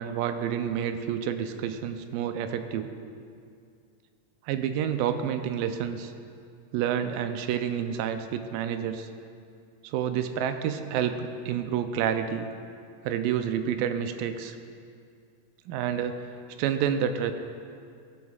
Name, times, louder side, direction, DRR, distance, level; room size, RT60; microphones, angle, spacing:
voice 1, 0.0-2.9 4.5-6.1 6.7-9.1 9.8-12.5 13.0-14.6 15.7-16.3 16.6-17.3, right 8 dB, 85° right, 8 dB, 2.2 m, -29 dB
14.5 x 11.5 x 2.4 m, 2.3 s
omnidirectional pair, 3.9 m